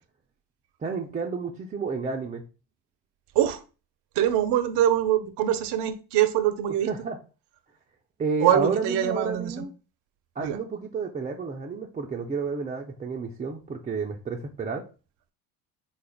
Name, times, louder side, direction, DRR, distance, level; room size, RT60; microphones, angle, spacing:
voice 1, 0.8-2.4 6.9-7.2 8.2-9.7 10.4-14.8, right 5 dB, 20° right, 0.4 m, -31 dB
voice 2, 4.2-6.9 8.4-9.7 10.4-10.6, right 11 dB, 60° right, 0.6 m, -23 dB
3.6 x 2.4 x 3.4 m
hypercardioid pair, 65°, 46 cm